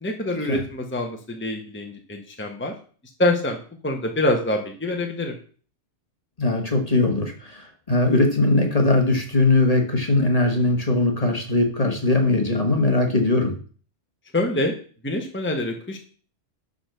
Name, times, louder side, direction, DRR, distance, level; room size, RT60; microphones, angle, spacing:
voice 1, 0.0-2.7 3.2-5.4 14.3-14.7 15.0-16.0, left 1 dB, 10° left, 2 dB, 1.2 m, -25 dB
voice 2, 6.4-13.5, left 2 dB, 30° left, 3 dB, 1.6 m, -20 dB
11.0 x 4.1 x 6.8 m, 0.41 s
omnidirectional pair, 1.3 m